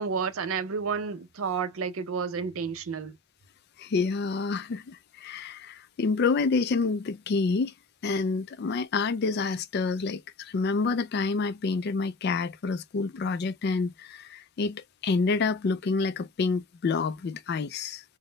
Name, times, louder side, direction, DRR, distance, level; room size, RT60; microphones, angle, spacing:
voice 1, 0.0-3.2, right 5 dB, 70° right, 0.5 m, -31 dB
voice 2, 3.8-7.7 8.0-18.0, left 4 dB, 45° left, 0.3 m, -28 dB
4.0 x 2.1 x 3.8 m
head